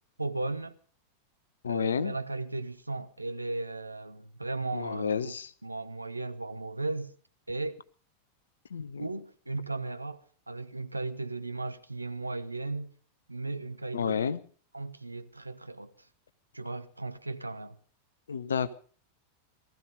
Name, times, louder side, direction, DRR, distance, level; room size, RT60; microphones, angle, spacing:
voice 1, 0.2-0.8 1.7-5.3 5.6-7.1 7.5-7.8 9.0-12.9 13.3-14.2 14.7-16.1 16.5-17.8, right 2 dB, 85° right, 0.9 m, -36 dB
voice 2, 1.6-2.2 4.7-5.5 8.7-9.0 13.9-14.4 18.3-18.7, left 6 dB, 70° left, 0.9 m, -30 dB
19.0 x 14.5 x 5.3 m
figure-of-eight pair, 90°, 0 cm